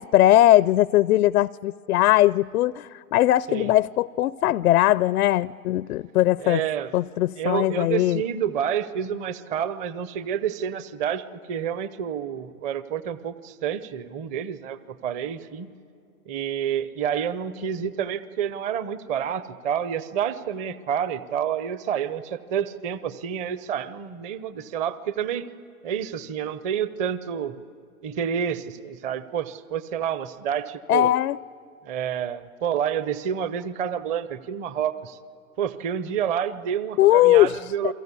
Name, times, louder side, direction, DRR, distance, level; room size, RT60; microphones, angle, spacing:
voice 1, 0.0-6.6 6.9-8.2 30.9-31.4 37.0-37.6 37.8-37.9, left 14 dB, 70° left, 19 dB, 0.6 m, -20 dB
voice 2, 6.4-6.9 7.4-15.7 16.3-25.5 25.8-27.6 28.0-31.1 31.8-35.2 35.6-37.9, right 8 dB, 15° right, 15 dB, 0.6 m, -29 dB
29.0 x 23.0 x 8.3 m, 2.4 s
hypercardioid pair, 130°, 46 cm